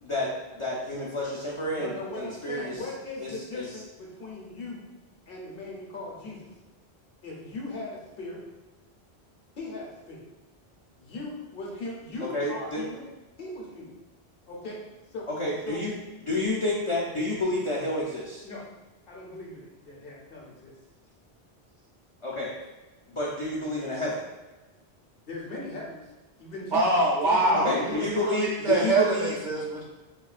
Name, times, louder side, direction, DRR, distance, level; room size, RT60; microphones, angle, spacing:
voice 1, 0.0-2.8 3.2-3.7 12.2-12.8 15.3-15.9 16.2-18.4 22.2-22.5 23.1-24.2 27.5-29.4, left 2 dB, 50° left, -5 dB, 0.4 m, -30 dB
voice 2, 1.7-4.8 5.3-6.5 7.2-8.4 9.6-10.2 11.0-13.1 13.4-13.9 14.5-14.8 15.1-15.3 15.7-15.8 18.4-18.6 19.1-20.7 25.3-26.1 26.4-26.9 27.2-28.1, left 2 dB, 65° left, -3 dB, 0.9 m, -38 dB
voice 3, 26.7-29.8, right 2 dB, 55° right, -3 dB, 0.6 m, -24 dB
3.5 x 2.3 x 2.3 m, 1.1 s
omnidirectional pair, 1.1 m